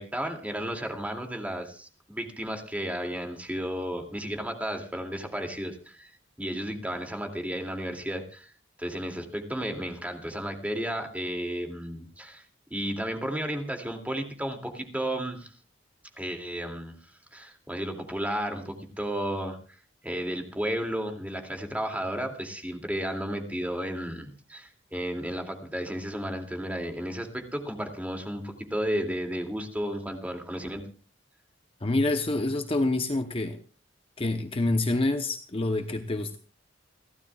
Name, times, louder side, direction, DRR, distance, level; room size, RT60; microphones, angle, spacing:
voice 1, 0.0-6.1 6.4-8.5 8.8-12.4 12.7-15.5 16.2-17.0 17.3-19.8 20.0-30.8, equal, 10° right, 4 dB, 2.5 m, -33 dB
voice 2, 31.8-33.6 34.2-36.4, left 2 dB, 30° left, 7 dB, 0.8 m, -27 dB
29.5 x 12.0 x 2.4 m, 0.38 s
head